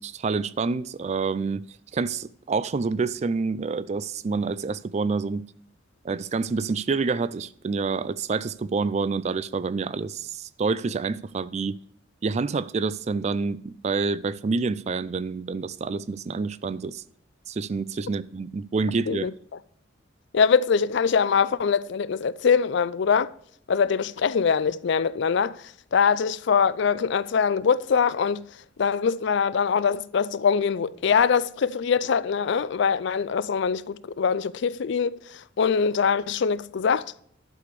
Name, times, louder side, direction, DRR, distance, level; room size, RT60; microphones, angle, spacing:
voice 1, 0.0-1.6 1.9-5.4 6.0-11.8 12.2-17.0 17.5-19.3, right 4 dB, 35° right, 0.3 m, -27 dB
voice 2, 20.3-23.3 23.7-25.6 25.9-28.5 28.8-35.2 35.6-37.1, left 6 dB, 60° left, 0.4 m, -23 dB
11.5 x 5.0 x 6.7 m
head